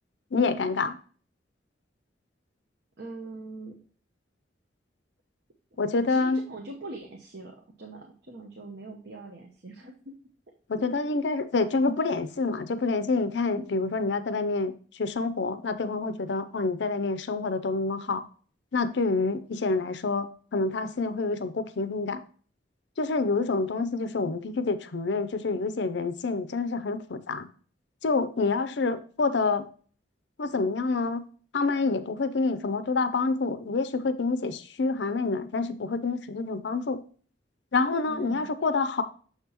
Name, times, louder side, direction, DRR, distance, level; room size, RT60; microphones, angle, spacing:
voice 1, 0.3-1.0 5.8-6.4 10.7-18.2 18.7-22.2 23.0-27.5 28.0-29.7 30.4-31.3 31.5-37.0 37.7-39.0, left 3 dB, 70° left, 11 dB, 0.6 m, -27 dB
voice 2, 3.0-3.8 6.1-9.9 10.8-10.9 13.6-13.9 38.1-38.5, right 2 dB, 65° right, 1 dB, 1.0 m, -42 dB
6.7 x 5.7 x 2.9 m, 0.42 s
head